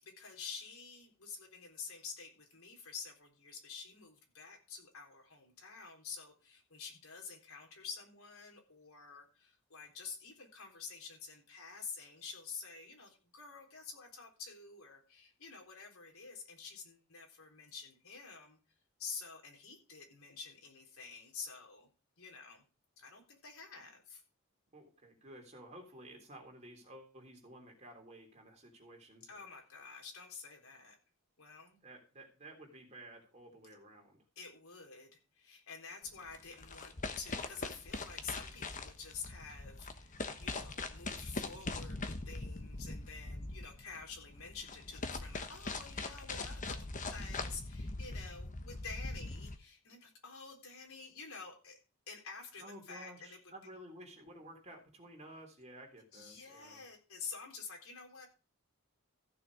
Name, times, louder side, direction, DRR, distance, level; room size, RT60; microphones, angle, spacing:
voice 1, 0.0-18.6 19.0-21.9 22.2-22.6 23.0-24.2 29.3-30.9 31.4-31.8 34.4-35.1 35.3-51.8 52.1-53.5 56.1-58.3, left 5 dB, 80° left, 2 dB, 3.8 m, -49 dB
voice 2, 24.7-29.4 31.8-34.2 52.6-56.8, right 1 dB, 30° right, 1 dB, 3.5 m, -53 dB
sound 1, 36.1-49.6, left 3 dB, 35° left, 1.2 m, -42 dB
15.0 x 6.8 x 4.9 m, 0.33 s
head